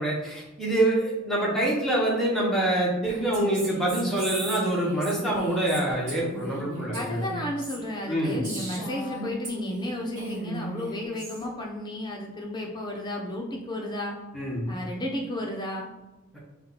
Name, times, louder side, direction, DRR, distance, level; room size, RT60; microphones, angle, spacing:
voice 1, 0.0-7.2 8.1-8.4 14.3-14.7 16.3-16.4, right 1 dB, ahead, -5 dB, 1.0 m, -26 dB
Female speech woman speaking, 3.1-9.9 10.2-11.4, right 1 dB, 35° right, 1.4 m, -37 dB
voice 2, 6.9-14.2 14.7-15.9, left 1 dB, 20° left, -1 dB, 0.7 m, -33 dB
5.0 x 2.3 x 3.9 m, 1.0 s
head